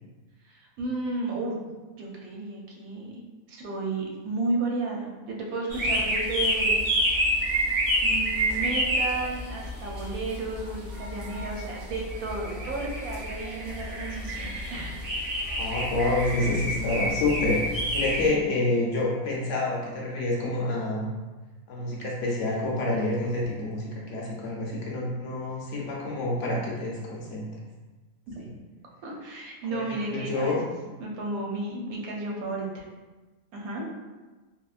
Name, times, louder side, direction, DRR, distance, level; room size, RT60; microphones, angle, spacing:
voice 1, 0.4-1.7 2.0-3.2 3.5-6.8 8.0-14.9 18.3-18.4 29.0-30.7 31.0-32.8 33.5-33.9, right 2 dB, 85° right, -2 dB, 1.1 m, -33 dB
sound 1, 5.7-18.3, equal, 60° right, 1.2 m, -28 dB
voice 2, 15.6-21.1 21.7-27.5 28.4-28.5 29.7-30.6, left 2 dB, 65° left, -4 dB, 0.9 m, -28 dB
3.4 x 2.1 x 2.4 m, 1.2 s
omnidirectional pair, 1.5 m